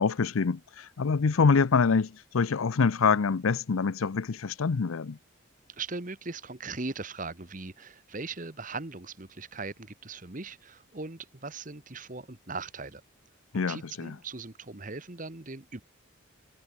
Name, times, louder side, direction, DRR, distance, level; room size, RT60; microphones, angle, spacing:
voice 1, 0.0-5.2 13.5-14.2, left 5 dB, 80° left, 0.6 m, -25 dB
voice 2, 5.8-13.0 13.7-15.8, right 3 dB, 40° right, 1.4 m, -39 dB
head